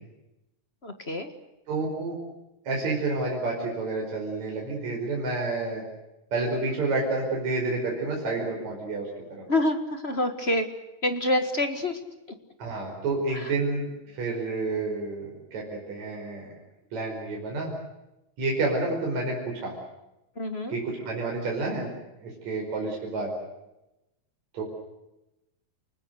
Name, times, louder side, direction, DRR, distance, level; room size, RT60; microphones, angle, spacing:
voice 1, 0.8-1.3 9.5-10.7 11.0-12.0 13.3-13.5 20.4-20.8, left 1 dB, 30° left, 7 dB, 1.1 m, -27 dB
voice 2, 1.7-2.2 2.6-5.8 6.3-9.4 12.6-16.5 16.9-17.7 18.4-19.8 20.7-21.9 22.2-23.3 24.5-24.6, right 3 dB, 55° right, -1 dB, 6.3 m, -29 dB
29.5 x 20.0 x 8.1 m, 0.93 s
omnidirectional pair, 3.8 m